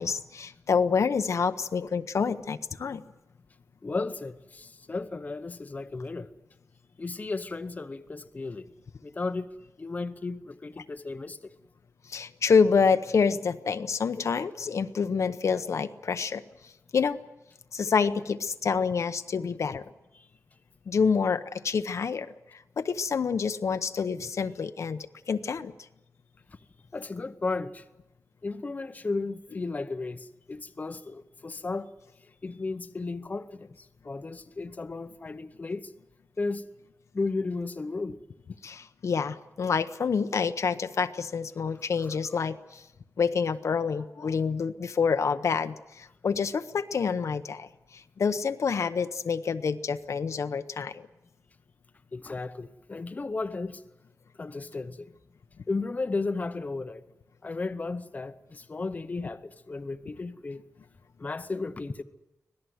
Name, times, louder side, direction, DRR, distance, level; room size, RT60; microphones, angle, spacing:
voice 1, 0.0-3.0 12.1-17.2 17.7-19.8 20.9-25.7 38.6-42.8 43.2-51.1, left 5 dB, 60° left, 0.8 m, -27 dB
voice 2, 3.8-6.3 7.0-8.7 9.0-9.5 9.8-11.5 20.2-20.3 26.5-26.6 26.9-27.8 28.4-31.9 32.4-35.9 36.4-36.6 37.1-38.2 52.1-53.8 54.4-55.1 55.7-57.0 57.4-60.7 61.2-62.0, left 3 dB, 30° left, 0.8 m, -34 dB
25.0 x 18.0 x 7.9 m
wide cardioid pair, 170°, 6 cm